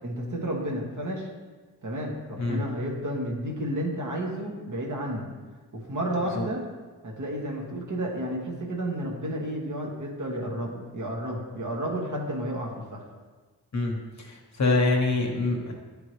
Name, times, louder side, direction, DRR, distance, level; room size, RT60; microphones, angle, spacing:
voice 1, 0.0-1.3 1.8-5.3 5.7-6.6 7.0-13.0, right 1 dB, 50° right, -1 dB, 1.3 m, -31 dB
voice 2, 13.7-15.7, left 2 dB, 45° left, 1 dB, 1.0 m, -25 dB
9.7 x 3.6 x 3.1 m, 1.4 s
cardioid pair, 70°, 39 cm